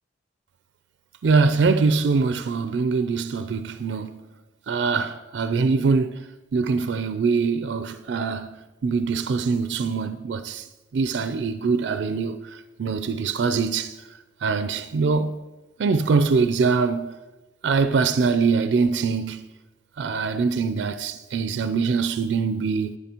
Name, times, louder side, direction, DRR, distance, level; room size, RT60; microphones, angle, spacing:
voice 1, 1.2-4.2 4.7-6.2 6.5-10.6 10.9-12.4 12.8-13.9 14.4-15.4 15.8-17.1 17.6-19.5 20.0-23.0, right 4 dB, 70° right, 0.4 m, -23 dB
10.5 x 9.4 x 2.9 m
head